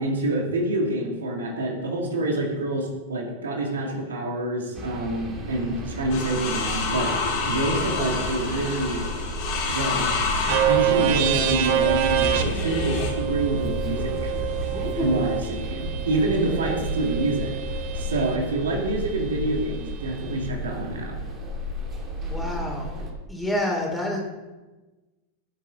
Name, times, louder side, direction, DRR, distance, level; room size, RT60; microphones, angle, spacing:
voice 1, 0.0-9.0 9.7-10.1 10.6-14.3 15.0-21.2, right 2 dB, 65° right, 1 dB, 2.4 m, -27 dB
sound 1, 4.7-23.1, equal, 25° right, 3.0 m, -32 dB
sound 2, 6.1-13.2 14.2-14.8, left 4 dB, 45° left, 3.0 m, -29 dB
sound 3, 10.5-18.4, right 11 dB, 50° right, 1.2 m, -27 dB
voice 2, 14.7-15.3 22.3-23.0 23.3-24.2, left 1 dB, 5° left, -1 dB, 3.4 m, -28 dB
17.0 x 8.3 x 3.8 m, 1.2 s
figure-of-eight pair, 90°, 0 cm